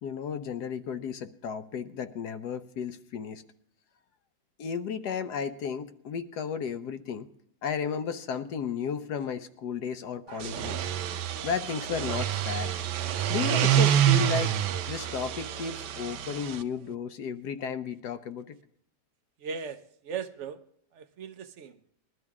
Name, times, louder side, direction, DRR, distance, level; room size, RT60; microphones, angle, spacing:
voice 1, 0.0-3.4 4.6-7.3 7.6-10.9 11.4-12.7 13.3-14.5 14.9-18.6, left 6 dB, 75° left, 10 dB, 1.3 m, -33 dB
sound 1, 10.3-16.6, right 10 dB, 85° right, 1.3 m, -27 dB
voice 2, 19.4-20.6 20.9-21.8, right 6 dB, 55° right, 11 dB, 0.9 m, -38 dB
20.5 x 12.5 x 3.6 m, 0.71 s
omnidirectional pair, 1.8 m